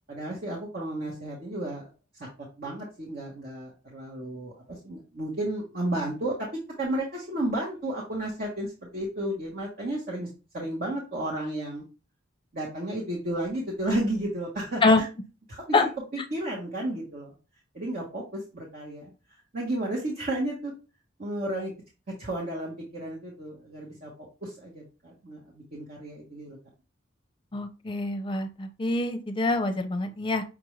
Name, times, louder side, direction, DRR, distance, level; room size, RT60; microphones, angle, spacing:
voice 1, 0.1-1.9 2.6-6.5 6.8-10.3 10.5-11.8 12.5-15.0 15.5-17.3 17.7-20.7 21.2-21.7 22.2-24.1 24.4-26.6, right 1 dB, 50° right, -4 dB, 1.2 m, -32 dB
voice 2, 27.5-30.4, left 3 dB, 25° left, 6 dB, 0.6 m, -25 dB
6.1 x 2.5 x 3.1 m, 0.32 s
head